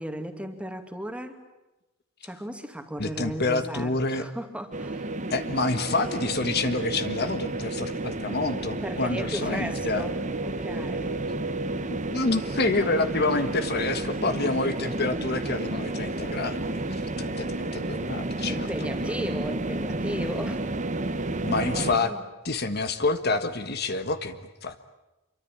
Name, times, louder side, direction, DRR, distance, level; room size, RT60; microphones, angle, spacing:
voice 1, 0.0-1.4 2.2-5.1 8.8-10.2 10.4-11.2 18.5-20.6 21.5-22.2, equal, 5° right, 6 dB, 2.4 m, -35 dB
voice 2, 3.0-4.3 5.3-10.1 12.1-18.7 21.4-22.1 22.4-24.8, left 3 dB, 55° left, 9 dB, 1.6 m, -28 dB
sound 1, 4.7-22.0, right 2 dB, 40° right, 1.4 m, -31 dB
27.0 x 24.0 x 8.9 m, 1.0 s
head